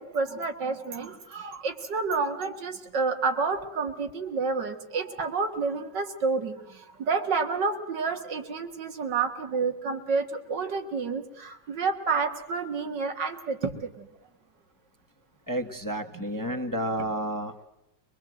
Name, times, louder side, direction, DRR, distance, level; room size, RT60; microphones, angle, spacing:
voice 1, 0.0-14.1 16.1-16.3, right 4 dB, 85° right, 5 dB, 2.4 m, -29 dB
voice 2, 15.5-17.7, right 1 dB, 15° left, 4 dB, 1.1 m, -31 dB
22.5 x 22.0 x 7.7 m, 0.84 s
omnidirectional pair, 1.9 m